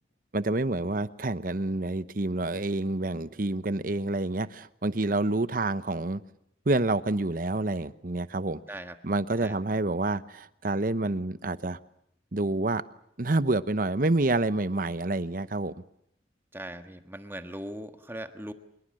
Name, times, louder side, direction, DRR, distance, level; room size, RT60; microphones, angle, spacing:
voice 1, 0.3-6.2 6.7-8.6 9.0-11.8 12.3-12.8 13.2-15.7, right 2 dB, 50° right, 0.9 m, -28 dB
voice 2, 16.5-18.5, right 1 dB, 10° right, 1.5 m, -39 dB
25.0 x 22.0 x 7.7 m
head